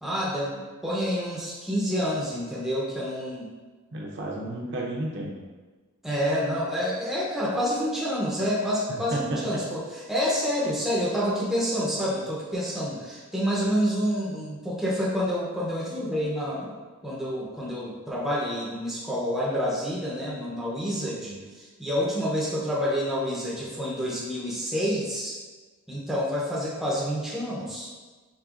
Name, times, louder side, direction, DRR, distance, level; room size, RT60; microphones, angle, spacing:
voice 1, 0.0-3.5 6.0-9.8 10.1-16.7 17.0-25.4 25.9-27.9, equal, ahead, -6 dB, 0.6 m, -28 dB
voice 2, 3.9-5.3 8.9-9.6, right 1 dB, 55° right, -3 dB, 0.7 m, -32 dB
5.1 x 3.3 x 2.4 m, 1.3 s
head